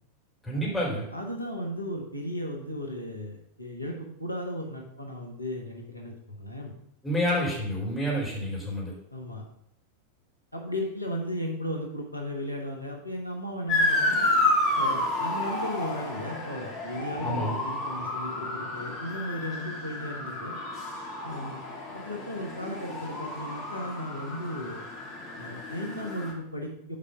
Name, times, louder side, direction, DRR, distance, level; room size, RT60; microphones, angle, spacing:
voice 1, 0.4-1.0 7.0-8.9 17.2-17.5, equal, 5° left, -4 dB, 3.7 m, -28 dB
voice 2, 1.1-6.7 9.1-9.4 10.5-14.3 14.8-20.6 21.2-21.6 21.9-24.8 25.4-27.0, equal, 90° left, 1 dB, 1.2 m, -35 dB
Motor vehicle (road) / Siren, 13.7-26.3, left 2 dB, 35° left, 2.7 m, -30 dB
7.4 x 5.0 x 5.7 m, 0.72 s
figure-of-eight pair, 90°, 0 cm